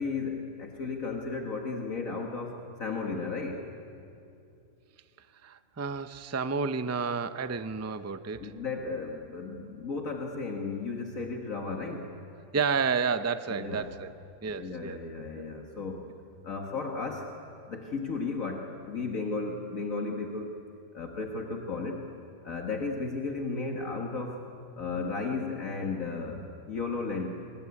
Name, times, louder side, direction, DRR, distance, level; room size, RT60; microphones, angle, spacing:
voice 1, 0.0-3.7 8.4-12.1 13.5-13.9 14.5-16.1 16.4-17.3 17.7-20.6 20.9-22.1 22.4-24.4 24.8-27.3, left 4 dB, 55° left, 2 dB, 2.0 m, -34 dB
voice 2, 5.4-8.5 12.5-14.1 14.4-15.0 15.3-15.5, right 5 dB, 20° right, 11 dB, 0.4 m, -31 dB
26.5 x 20.0 x 9.7 m, 2.6 s
omnidirectional pair, 1.7 m